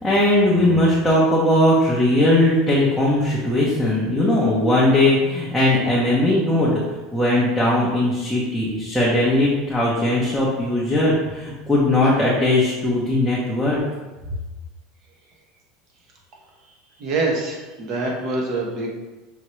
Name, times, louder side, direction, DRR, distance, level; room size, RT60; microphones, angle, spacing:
voice 1, 0.0-6.8 7.1-13.8, left 1 dB, 5° left, -7 dB, 0.7 m, -19 dB
voice 2, 17.0-18.9, right 3 dB, 45° right, -1 dB, 1.1 m, -25 dB
5.8 x 2.8 x 3.1 m, 1.2 s
supercardioid pair, 145°, 0 cm